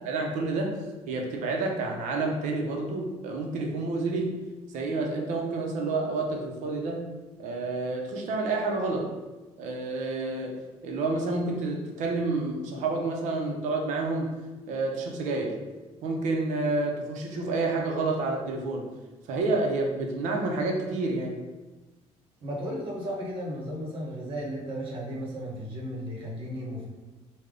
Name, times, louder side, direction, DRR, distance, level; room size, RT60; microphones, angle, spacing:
voice 1, 0.0-0.8 1.1-4.4 4.7-7.1 7.4-9.1 9.6-10.6 10.8-14.3 14.7-15.6 16.0-18.9 19.3-21.4, right 3 dB, 85° right, 1 dB, 0.6 m, -29 dB
voice 2, 22.4-26.9, equal, 45° right, -3 dB, 1.0 m, -34 dB
3.3 x 2.2 x 3.7 m, 1.2 s
cardioid pair, 125°, 12 cm